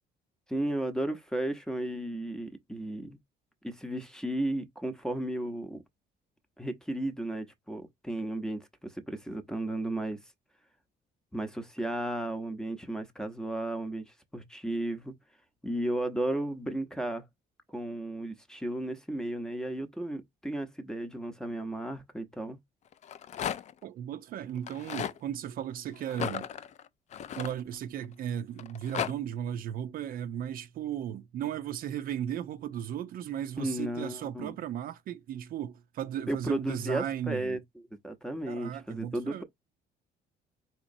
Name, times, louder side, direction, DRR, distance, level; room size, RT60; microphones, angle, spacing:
voice 1, 0.5-3.2 3.6-5.8 6.6-10.2 11.3-15.1 15.6-17.2 17.7-22.6 33.6-34.6 36.3-37.6 38.0-39.4, right 1 dB, 5° left, 0.7 m, -34 dB
Rattle, 22.9-23.8 24.6-25.2 26.1-28.1 28.6-29.1, left 9 dB, 45° left, 0.4 m, -35 dB
voice 2, 23.8-26.5 27.3-37.6 38.5-39.4, right 10 dB, 60° right, 0.5 m, -36 dB
3.9 x 2.9 x 2.6 m
cardioid pair, 110°, 17 cm